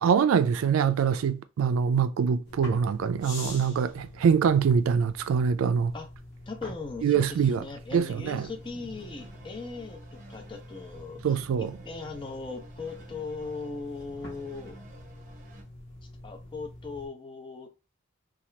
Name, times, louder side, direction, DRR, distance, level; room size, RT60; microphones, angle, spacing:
voice 1, 0.0-5.9 7.0-7.6 7.9-8.5 11.2-11.8, right 6 dB, 75° right, 0.3 m, -24 dB
sound 1, 2.4-17.1, left 1 dB, 55° left, 1.2 m, -46 dB
voice 2, 6.5-14.8 16.2-17.7, left 4 dB, 25° left, 0.5 m, -39 dB
sound 2, 8.3-15.6, right 2 dB, 40° right, 0.7 m, -51 dB
2.8 x 2.4 x 3.2 m
head